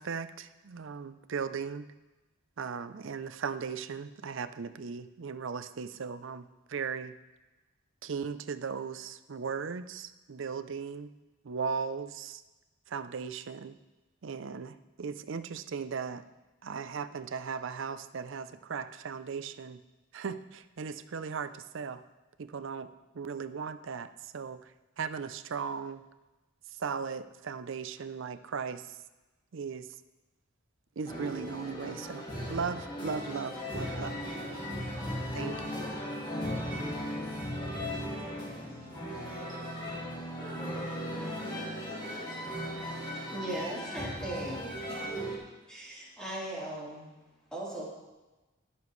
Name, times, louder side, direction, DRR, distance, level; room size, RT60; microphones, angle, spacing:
voice 1, 0.0-1.9 2.6-7.2 8.0-11.1 11.4-12.4 12.9-13.8 14.2-16.2 16.6-19.8 20.1-22.0 22.4-26.0 26.7-29.0 29.5-29.9 31.0-34.2 35.3-35.8, right 5 dB, 65° right, 12 dB, 0.5 m, -37 dB
sound 1, 31.1-45.4, equal, 20° left, 2.2 m, -37 dB
voice 2, 37.7-39.2 40.4-41.0 41.5-42.4, right 2 dB, 40° right, -6 dB, 3.1 m, -50 dB
voice 3, 43.3-44.7 45.7-47.1 47.5-47.9, right 1 dB, 5° left, -8 dB, 3.5 m, -38 dB
19.5 x 7.1 x 3.2 m, 1.1 s
head